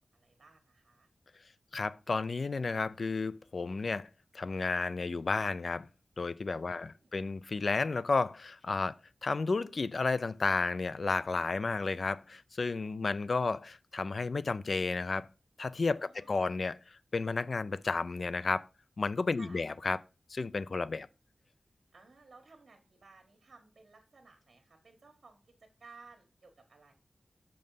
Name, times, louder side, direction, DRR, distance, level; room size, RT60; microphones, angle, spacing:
voice 1, 0.1-1.1 6.6-7.1 15.9-16.5 19.3-19.7 21.9-26.9, right 4 dB, 65° right, 1.5 m, -58 dB
voice 2, 1.7-4.1 4.3-5.9 6.2-9.0 9.2-15.3 15.6-18.7 19.0-20.0 20.3-21.1, left 3 dB, 60° left, 0.4 m, -32 dB
6.6 x 5.3 x 5.5 m
wide cardioid pair, 100°, 0 cm